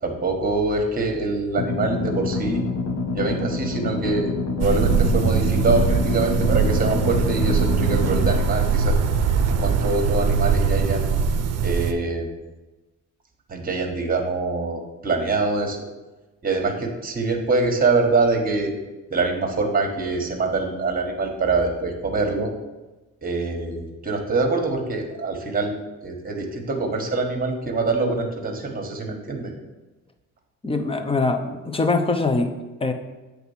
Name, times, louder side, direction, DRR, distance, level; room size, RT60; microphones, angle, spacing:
voice 1, 0.0-2.6 3.1-4.3 4.6-9.0 9.5-11.0 11.6-12.3 13.5-15.8 16.4-18.7 19.1-22.5 23.2-29.5, right 3 dB, 30° right, 3 dB, 1.5 m, -24 dB
sound 1, 1.6-8.3, left 3 dB, 55° left, 1.2 m, -27 dB
sound 2, 4.6-11.9, right 6 dB, 55° right, 0.7 m, -21 dB
voice 2, 30.6-32.5 32.8-32.9, left 3 dB, 20° left, 6 dB, 0.8 m, -23 dB
7.8 x 3.6 x 5.7 m, 1.1 s
cardioid pair, 90°, 30 cm